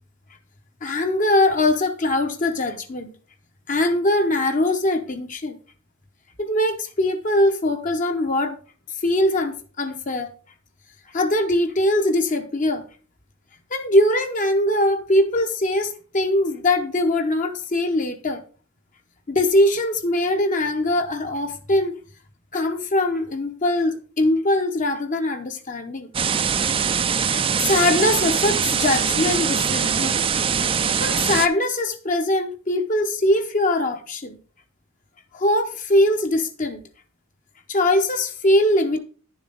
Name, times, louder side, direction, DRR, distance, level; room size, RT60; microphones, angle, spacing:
voice 1, 0.8-3.1 3.7-5.6 6.4-8.6 9.0-10.3 11.1-12.8 13.7-18.4 19.3-21.9 22.5-26.1 27.4-30.2 31.0-34.4 35.3-36.8 37.7-39.0, left 1 dB, 40° left, 0.8 m, -21 dB
sound 1, 26.1-31.5, right 7 dB, 25° right, 0.4 m, -22 dB
10.0 x 7.1 x 3.9 m
head